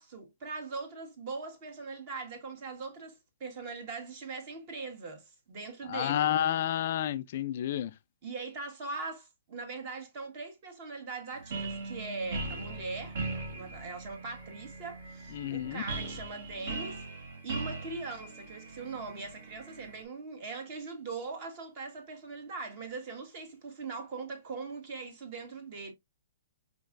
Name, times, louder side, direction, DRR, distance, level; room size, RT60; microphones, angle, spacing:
voice 1, 0.0-6.3 8.2-13.2 13.6-17.0 17.4-25.9, right 4 dB, 40° right, 1.6 m, -41 dB
voice 2, 5.9-7.9 15.3-15.8, left 11 dB, 50° left, 0.4 m, -30 dB
sound 1, 11.3-20.0, right 3 dB, 60° right, 1.2 m, -40 dB
5.0 x 3.0 x 2.5 m
hypercardioid pair, 145°, 0 cm